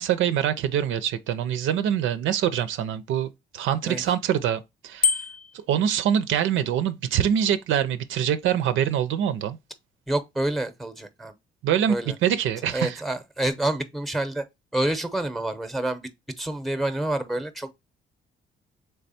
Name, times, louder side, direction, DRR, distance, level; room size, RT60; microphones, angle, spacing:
voice 1, 0.0-5.2 5.5-9.6 11.6-12.0 12.2-13.0, right 9 dB, 80° right, 0.5 m, -24 dB
Bicycle bell, 5.0-5.6, left 6 dB, 45° left, 0.5 m, -24 dB
voice 2, 10.1-11.3 11.9-12.2 12.7-14.4 14.7-16.1 16.4-17.7, right 1 dB, ahead, 0.7 m, -28 dB
3.4 x 3.4 x 4.1 m
cardioid pair, 90°, 20 cm